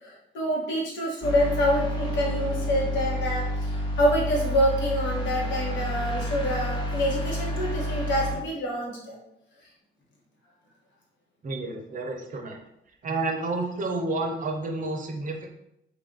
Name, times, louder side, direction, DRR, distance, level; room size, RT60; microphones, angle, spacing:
voice 1, 0.0-9.2, equal, 75° left, -3 dB, 1.4 m, -26 dB
sound 1, 1.2-8.3, equal, 25° left, 1.1 m, -29 dB
voice 2, 11.4-12.6 13.0-15.5, right 2 dB, 45° right, 3 dB, 0.7 m, -30 dB
3.3 x 2.4 x 3.8 m, 0.81 s
cardioid pair, 110°, 19 cm